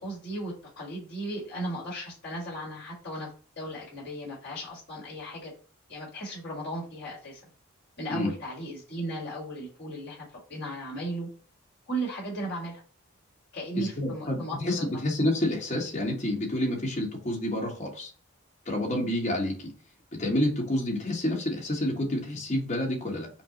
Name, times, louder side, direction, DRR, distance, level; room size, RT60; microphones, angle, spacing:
voice 1, 0.0-3.3 3.6-5.5 5.9-7.4 8.0-10.2 10.5-11.3 11.9-12.8 13.5-15.0, right 1 dB, 50° left, -5 dB, 1.7 m, -36 dB
voice 2, 13.8-18.1 18.6-19.7 20.2-23.3, left 1 dB, 30° left, -1 dB, 1.2 m, -29 dB
5.8 x 2.0 x 3.8 m, 0.39 s
head